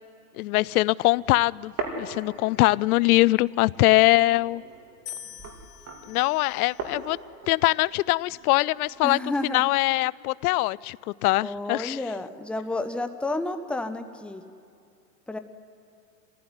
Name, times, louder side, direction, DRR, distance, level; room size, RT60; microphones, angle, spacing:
voice 1, 0.4-1.7 2.0-4.6 6.1-7.2 7.5-12.0, left 20 dB, 60° left, 23 dB, 0.5 m, -22 dB
sound 1, 1.0-2.8 3.2-9.1, right 3 dB, 30° right, 2.8 m, -40 dB
sound 2, 5.1-7.3 8.1-8.6, left 9 dB, 75° left, 2.1 m, -45 dB
voice 2, 9.0-9.6 11.4-14.4 15.3-15.4, left 2 dB, ahead, 8 dB, 0.6 m, -31 dB
25.5 x 15.5 x 9.6 m, 2.5 s
hypercardioid pair, 125°, 50 cm